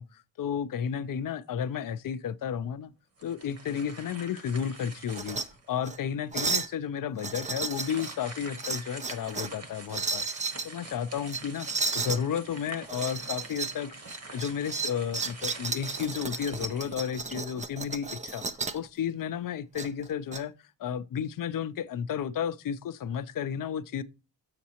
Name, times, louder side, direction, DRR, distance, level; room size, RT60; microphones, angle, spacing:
voice 1, 0.0-2.9 3.2-5.4 5.7-10.2 10.6-11.7 11.9-13.9 14.3-18.4 18.7-20.5 20.8-24.0, left 8 dB, 50° left, 0.5 m, -32 dB
sound 1, 3.2-5.7 6.3-6.4 7.6-17.4, right 3 dB, 35° right, 1.1 m, -46 dB
sound 2, 5.1-5.5 5.8-6.0 6.3-6.7 7.2-8.2 8.6-9.6 9.9-10.7 11.3-12.2 12.9-13.8 14.1-18.8 19.8-20.4, right 4 dB, 20° right, 0.4 m, -33 dB
7.1 x 6.5 x 2.9 m
wide cardioid pair, 125°, 43 cm